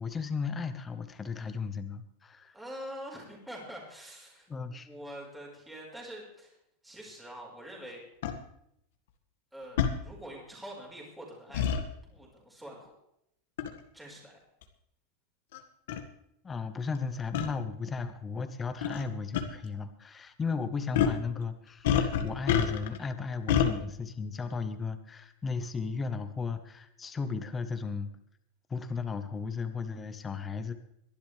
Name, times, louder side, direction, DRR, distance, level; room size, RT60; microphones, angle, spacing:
voice 1, 0.0-2.5 4.5-4.9 16.4-28.1 28.7-30.7, left 5 dB, 15° left, 9 dB, 1.1 m, -35 dB
voice 2, 2.5-4.5 4.8-6.6 6.8-8.0 9.5-11.7 12.0-12.9 13.9-14.4, equal, 5° right, -2 dB, 4.7 m, -45 dB
sound 1, 8.2-8.3 9.8-9.9 11.5-11.8 13.6-13.8 14.6-14.7 15.5-15.6 15.9-16.0 17.3-17.5 18.8-19.0 19.3-19.4 20.9-21.2 21.8-23.0 23.5-23.7, left 8 dB, 75° left, 1.8 m, -26 dB
22.5 x 12.0 x 3.4 m, 0.76 s
supercardioid pair, 145°, 0 cm